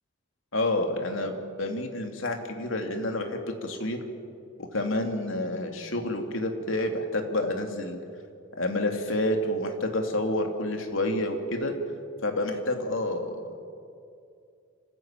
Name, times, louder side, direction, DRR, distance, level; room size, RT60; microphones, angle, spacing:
voice 1, 0.5-4.0 4.6-8.0 8.6-11.7 12.2-13.6, left 1 dB, 70° left, 4 dB, 2.8 m, -29 dB
26.5 x 15.5 x 9.0 m, 2.4 s
head